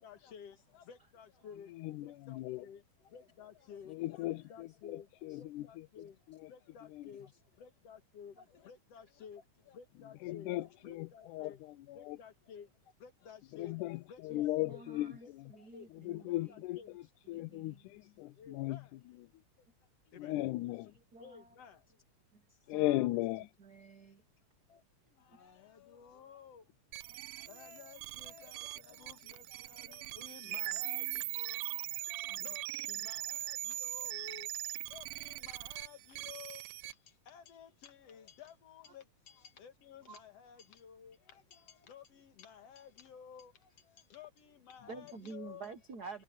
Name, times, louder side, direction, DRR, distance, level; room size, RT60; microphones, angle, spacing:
voice 1, 0.0-11.7 11.9-14.8 15.2-15.9 16.2-16.9 18.4-19.0 19.6-19.7 20.1-20.4 21.2-22.0 22.7-22.8 24.7-45.7, left 7 dB, 60° left, 2.5 m, -54 dB
voice 2, 1.7-2.7 3.9-6.5 6.9-7.0 10.2-12.2 13.5-15.5 15.9-18.8 20.2-20.9 22.7-23.5, left 17 dB, 90° left, 2.1 m, -37 dB
voice 3, 14.3-16.6 17.3-17.8 20.3-20.5 21.1-21.5 22.3-23.1 23.6-24.2 30.4-30.5 32.3-32.5 32.9-33.0 40.1-40.2 44.9-46.2, right 4 dB, 60° right, 1.0 m, -50 dB
sound 1, 26.9-36.9, right 17 dB, 80° right, 1.7 m, -41 dB
omnidirectional pair, 3.5 m